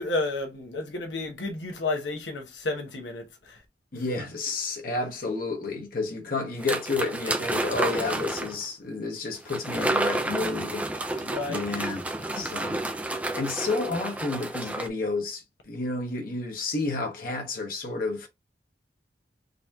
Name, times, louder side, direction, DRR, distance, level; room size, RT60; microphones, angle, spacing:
voice 1, 0.0-3.6 3.9-4.0 11.2-11.7 12.3-12.5, left 2 dB, 80° left, 1.0 m, -32 dB
voice 2, 3.9-11.0 11.5-12.1 12.3-12.8 13.3-18.3, left 3 dB, 50° left, 1.2 m, -31 dB
sound 1, 6.6-8.6 9.5-14.9, right 2 dB, 10° right, 0.5 m, -30 dB
3.9 x 3.0 x 3.5 m
head